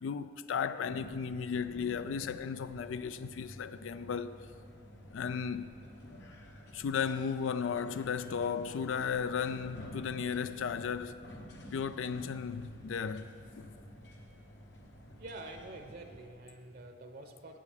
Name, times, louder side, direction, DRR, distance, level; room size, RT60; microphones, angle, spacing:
voice 1, 0.0-4.5 5.1-5.7 6.7-11.2 11.7-13.3 13.6-13.7, left 6 dB, 85° left, 0.4 m, -35 dB
sound 1, 0.8-16.3, equal, 65° left, 1.2 m, -51 dB
voice 2, 15.2-17.6, right 2 dB, 55° right, 0.8 m, -47 dB
15.5 x 8.1 x 3.4 m
head